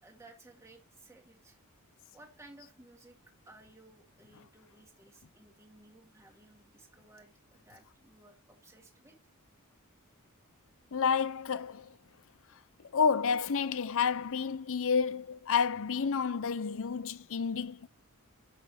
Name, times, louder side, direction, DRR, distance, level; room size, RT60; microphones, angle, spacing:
voice 1, 0.0-1.6 2.1-3.2 3.5-9.2, right 2 dB, 15° right, 2.1 m, -57 dB
voice 2, 10.9-12.0 12.8-17.9, left 6 dB, 65° left, 0.6 m, -30 dB
12.0 x 6.5 x 3.6 m
head